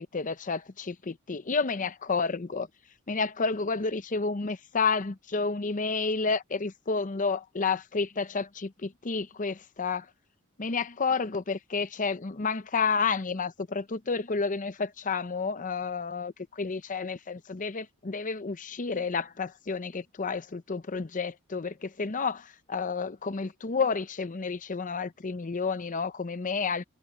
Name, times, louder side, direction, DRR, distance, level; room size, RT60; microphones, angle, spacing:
voice 1, 0.0-2.7 3.1-10.1 10.6-26.9, left 4 dB, 35° left, 0.7 m, -30 dB
head